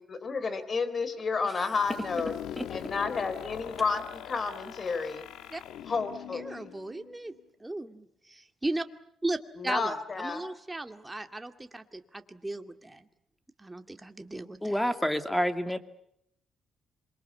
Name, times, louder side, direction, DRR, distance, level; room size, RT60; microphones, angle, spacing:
voice 1, 0.0-2.3 2.7-5.2 5.9-6.7 9.6-10.4, left 4 dB, 40° left, 13 dB, 3.8 m, -31 dB
sound 1, 1.7-7.4, left 11 dB, 85° left, 1.4 m, -42 dB
voice 2, 6.3-7.3 7.6-8.9 9.2-13.1 13.6-14.9, right 2 dB, 15° right, 7 dB, 2.2 m, -36 dB
voice 3, 14.6-15.8, equal, 5° left, 9 dB, 2.4 m, -28 dB
27.0 x 22.5 x 8.3 m, 0.73 s
cardioid pair, 90°, 0 cm